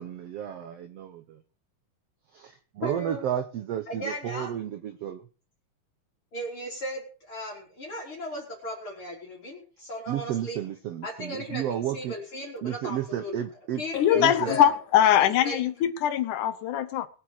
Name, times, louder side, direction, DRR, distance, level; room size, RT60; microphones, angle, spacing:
voice 1, 0.0-1.4 2.3-5.2 10.1-12.1 12.6-13.8 14.1-14.5, right 10 dB, 70° right, 9 dB, 1.5 m, -32 dB
voice 2, 2.8-3.3 3.9-4.5 6.3-10.6 11.0-13.4 13.7-14.7 15.2-15.6, equal, 40° left, -2 dB, 4.5 m, -36 dB
voice 3, 13.9-17.1, left 10 dB, 70° left, 12 dB, 2.4 m, -22 dB
22.0 x 8.1 x 4.8 m, 0.37 s
omnidirectional pair, 3.9 m